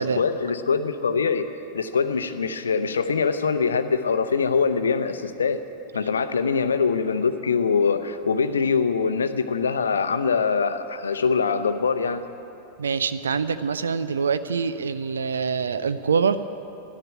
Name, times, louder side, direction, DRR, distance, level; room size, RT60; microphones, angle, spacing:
voice 1, 0.0-1.5 1.7-5.6 5.9-12.2, left 5 dB, 70° left, 10 dB, 0.7 m, -23 dB
voice 2, 12.8-16.5, right 5 dB, 70° right, 13 dB, 0.5 m, -25 dB
12.5 x 10.5 x 8.7 m, 2.9 s
figure-of-eight pair, 90°, 0 cm